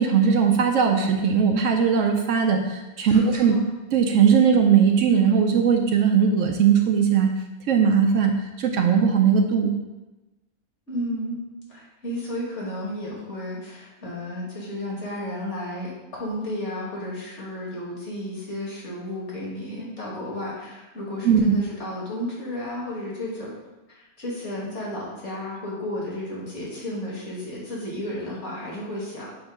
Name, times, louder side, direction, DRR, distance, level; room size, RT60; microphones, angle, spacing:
voice 1, 0.0-3.6 3.9-7.3 7.7-9.7 21.2-21.5, right 6 dB, 70° right, 4 dB, 0.8 m, -19 dB
voice 2, 3.1-3.6 10.9-11.4 11.7-23.5 23.9-29.3, left 1 dB, 50° left, -5 dB, 1.9 m, -33 dB
7.3 x 2.6 x 4.9 m, 1.1 s
omnidirectional pair, 1.6 m